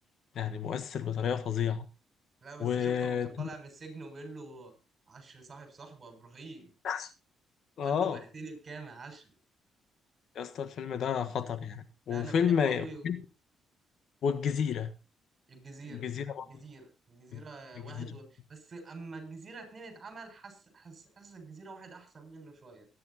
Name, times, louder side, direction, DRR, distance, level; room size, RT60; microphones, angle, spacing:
voice 1, 0.3-1.8 2.6-3.5 6.8-7.1 7.8-8.2 10.3-13.2 14.2-14.9 15.9-16.5 17.3-17.4 17.9-18.1, left 7 dB, 65° left, 1.3 m, -31 dB
voice 2, 2.4-4.7 5.1-6.7 7.8-9.3 12.1-13.2 15.5-16.1 16.4-22.9, right 3 dB, 40° right, 6.8 m, -46 dB
23.5 x 10.5 x 2.9 m
cardioid pair, 90°, 0 cm